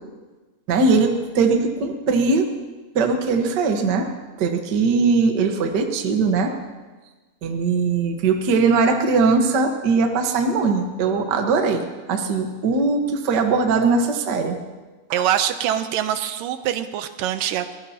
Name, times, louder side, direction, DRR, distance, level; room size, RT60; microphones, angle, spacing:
voice 1, 0.7-2.5 2.9-4.1 4.4-6.5 7.4-14.6, right 4 dB, 55° right, 4 dB, 1.1 m, -20 dB
voice 2, 15.1-17.8, right 11 dB, 80° right, 9 dB, 2.3 m, -24 dB
23.5 x 19.0 x 2.9 m, 1.3 s
omnidirectional pair, 3.9 m